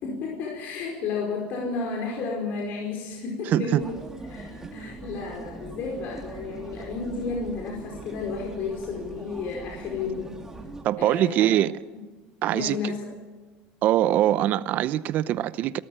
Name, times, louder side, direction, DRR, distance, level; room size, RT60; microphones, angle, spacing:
voice 1, 0.0-3.9 4.3-10.4 11.0-11.5 12.5-13.1, left 4 dB, 50° left, 5.0 m, -32 dB
voice 2, 3.5-3.8 10.8-11.7 12.4-12.9 13.8-15.8, right 12 dB, 45° right, 0.7 m, -23 dB
sound 1, 3.8-10.8, right 2 dB, 10° right, 2.4 m, -41 dB
28.0 x 13.5 x 8.8 m
cardioid pair, 145°, 4 cm